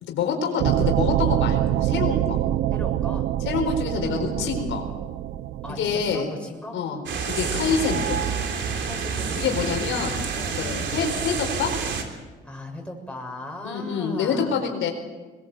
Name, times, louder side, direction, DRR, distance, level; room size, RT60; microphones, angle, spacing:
voice 1, 0.0-2.4 3.5-4.9 5.8-6.3 6.7-7.0 7.2-8.2 9.4-10.2 10.5-11.7 13.6-14.9, left 6 dB, 85° left, 2 dB, 4.4 m, -26 dB
sound 1, 0.6-6.2, right 12 dB, 85° right, 0.9 m, -25 dB
voice 2, 2.7-3.3 5.6-6.8 7.3-7.6 8.8-9.9 10.4-10.6 12.1-14.6, left 1 dB, 5° left, 1 dB, 6.4 m, -38 dB
sound 2, 7.1-12.0, right 6 dB, 70° right, 3.5 m, -28 dB
22.0 x 21.5 x 7.9 m, 1.3 s
cardioid pair, 90°, 20 cm